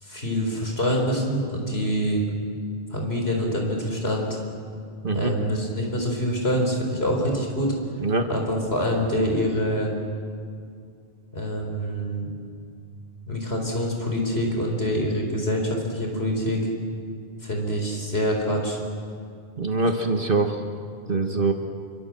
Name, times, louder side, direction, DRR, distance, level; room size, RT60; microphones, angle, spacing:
voice 1, 0.0-2.2 2.9-4.4 5.1-7.7 8.3-9.9 11.3-12.3 13.3-16.6 17.4-18.8, equal, 75° left, 1 dB, 4.8 m, -25 dB
voice 2, 19.6-20.6 21.1-21.5, right 3 dB, 55° right, 4 dB, 1.7 m, -23 dB
27.5 x 26.0 x 7.6 m, 2.3 s
omnidirectional pair, 1.1 m